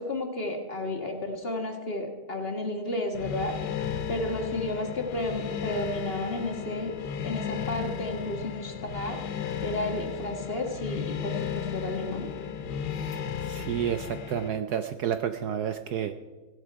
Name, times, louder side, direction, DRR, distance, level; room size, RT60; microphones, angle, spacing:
voice 1, 0.0-3.5 4.1-6.9 7.2-9.2 9.6-12.3, left 1 dB, 30° left, 3 dB, 1.5 m, -32 dB
sound 1, 3.1-14.5, left 8 dB, 60° left, 1.3 m, -34 dB
voice 2, 12.9-16.1, right 9 dB, 80° right, 9 dB, 0.8 m, -31 dB
16.5 x 11.0 x 4.7 m, 1.3 s
omnidirectional pair, 2.4 m